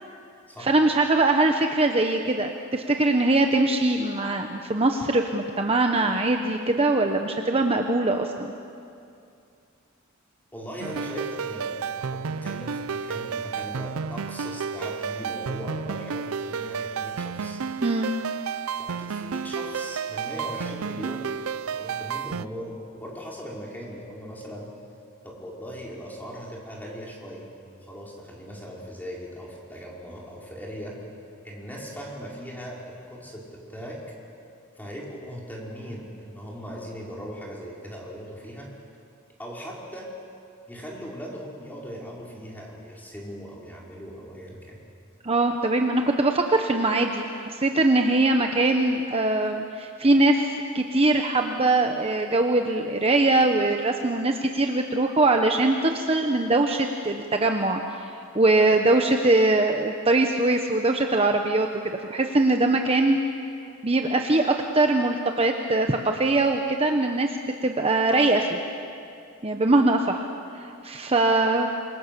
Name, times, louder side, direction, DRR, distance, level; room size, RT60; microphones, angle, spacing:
voice 1, 0.6-8.5 17.8-18.1 45.2-61.7 62.1-63.2 63.8-68.6 69.4-70.2 70.5-71.7, right 2 dB, 30° right, 4 dB, 1.0 m, -22 dB
voice 2, 10.5-17.6 18.8-21.3 21.6-24.7 25.2-27.5 27.9-31.0 31.4-34.0 34.8-38.7 39.4-40.1 40.7-44.8, equal, 10° left, -3 dB, 4.8 m, -39 dB
sound 1, 10.8-22.5, right 6 dB, 85° right, 0.5 m, -31 dB
27.0 x 24.0 x 6.9 m, 2.5 s
head